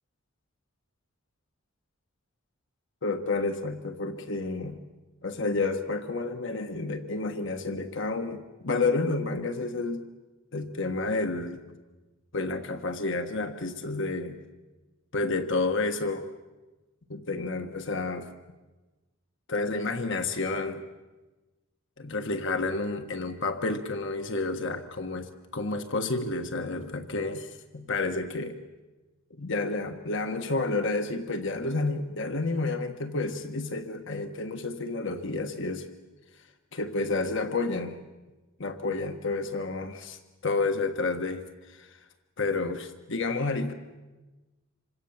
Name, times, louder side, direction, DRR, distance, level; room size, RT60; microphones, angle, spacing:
voice 1, 3.0-4.8 5.2-10.0 10.5-11.6 12.3-14.4 15.1-16.3 17.1-18.3 19.5-20.8 22.0-28.6 29.4-35.9 36.7-38.0 38.6-41.9 42.4-43.7, left 3 dB, 65° left, 6 dB, 1.4 m, -30 dB
27.5 x 25.0 x 7.3 m, 1.2 s
head